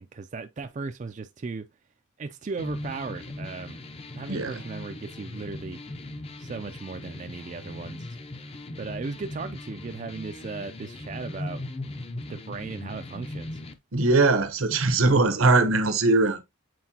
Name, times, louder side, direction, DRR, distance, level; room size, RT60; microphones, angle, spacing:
voice 1, 0.0-1.7 2.2-3.8 4.1-5.8 6.4-8.1 8.8-11.6 12.1-13.6, right 4 dB, 35° right, 0.4 m, -36 dB
sound 1, 2.6-13.7, left 1 dB, 30° left, 0.6 m, -39 dB
voice 2, 13.9-16.4, right 3 dB, 80° right, 1.0 m, -21 dB
7.7 x 4.5 x 2.8 m
head